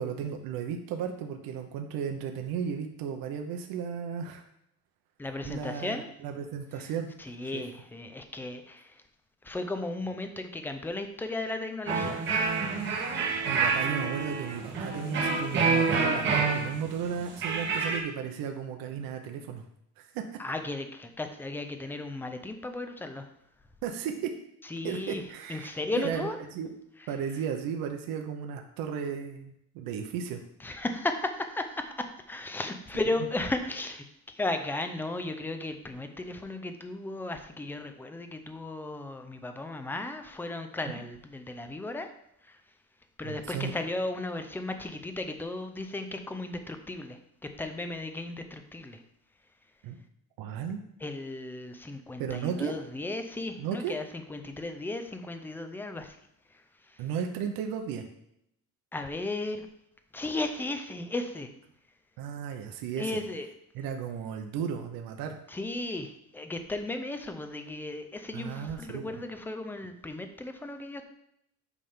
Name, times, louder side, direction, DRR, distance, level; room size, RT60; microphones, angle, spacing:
voice 1, 0.0-4.4 5.4-7.1 7.5-7.6 13.5-19.7 20.0-20.4 23.8-24.3 24.8-25.7 26.0-26.7 27.1-30.4 43.2-43.7 49.8-50.0 50.4-50.8 52.2-52.7 53.6-54.0 57.0-58.0 62.2-63.1 63.7-65.4 68.3-69.2, right 7 dB, 70° right, 4 dB, 1.0 m, -34 dB
voice 2, 5.2-6.1 6.8-6.9 7.2-9.0 9.4-12.3 12.6-13.3 20.4-23.3 24.6-25.2 25.5-26.4 30.6-34.0 34.3-42.1 42.4-42.6 43.2-47.2 47.6-49.0 51.0-56.2 56.5-57.0 58.9-59.7 60.1-61.5 63.0-63.5 65.5-71.1, left 2 dB, 5° left, 7 dB, 0.5 m, -35 dB
sound 1, 11.9-18.0, right 4 dB, 30° right, 1.7 m, -28 dB
8.5 x 3.5 x 5.6 m, 0.76 s
cardioid pair, 160°, 36 cm